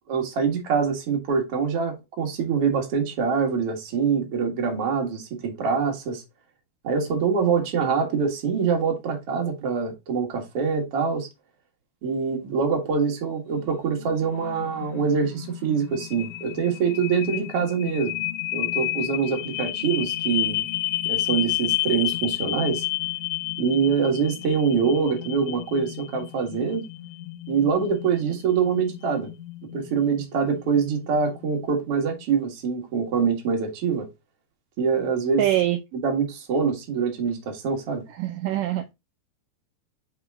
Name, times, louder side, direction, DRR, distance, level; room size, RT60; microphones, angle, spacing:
voice 1, 0.1-6.2 6.8-11.3 12.0-18.2 18.5-20.7 21.1-22.9 23.6-26.9 27.5-29.3 29.7-34.1 34.8-35.5 35.9-38.0, right 6 dB, 45° right, 2.1 m, -24 dB
sound 1, 13.5-31.6, left 17 dB, 85° left, 1.8 m, -31 dB
voice 2, 35.4-35.8 38.2-38.9, right 13 dB, 80° right, 1.9 m, -23 dB
5.8 x 5.0 x 3.5 m
omnidirectional pair, 4.5 m